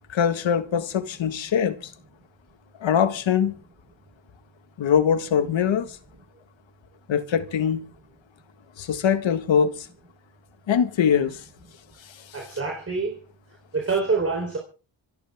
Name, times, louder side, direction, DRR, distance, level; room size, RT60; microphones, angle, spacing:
voice 1, 0.1-1.9 2.8-3.6 4.8-6.0 7.1-7.8 8.8-9.9 10.7-11.4 12.1-12.2, left 8 dB, 75° left, 1.8 m, -22 dB
voice 2, 12.3-13.2 13.7-14.6, right 4 dB, 30° right, 3.9 m, -26 dB
26.0 x 11.0 x 3.6 m
wide cardioid pair, 125°, 46 cm